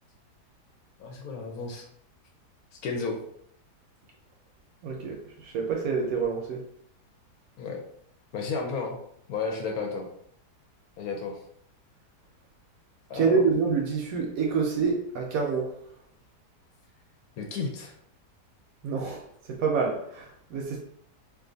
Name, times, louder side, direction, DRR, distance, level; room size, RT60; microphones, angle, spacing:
voice 1, 1.0-1.8 2.8-3.2 7.6-7.8 8.3-9.0 9.3-10.0 11.0-11.4 13.1-13.4 17.4-17.9, left 4 dB, 70° left, 2 dB, 1.0 m, -32 dB
voice 2, 4.8-5.2 5.4-6.6 13.1-15.7 18.8-19.2 19.5-20.8, right 5 dB, 70° right, 1 dB, 0.9 m, -27 dB
2.6 x 2.5 x 3.8 m, 0.69 s
omnidirectional pair, 1.8 m